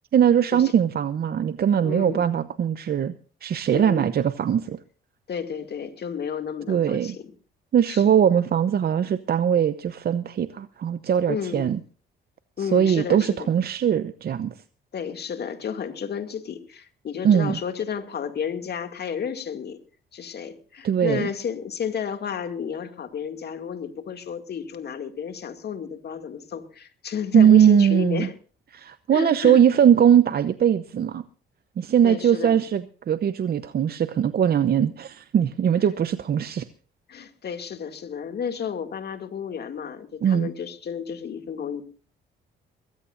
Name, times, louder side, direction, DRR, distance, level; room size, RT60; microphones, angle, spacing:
voice 1, 0.1-3.1 3.4-4.8 6.7-7.1 7.7-11.8 12.6-14.5 17.2-17.6 20.8-21.3 27.3-28.3 28.7-31.2 31.8-36.7 40.2-40.5, right 9 dB, 50° right, 13 dB, 0.8 m, -20 dB
voice 2, 1.8-2.2 3.7-4.1 5.3-7.3 7.9-8.1 11.3-11.7 12.6-13.5 14.9-19.8 20.1-28.3 29.1-29.6 32.0-32.6 37.1-41.8, left 7 dB, 55° left, 7 dB, 2.4 m, -32 dB
23.0 x 15.5 x 2.6 m, 0.40 s
cardioid pair, 90°, 20 cm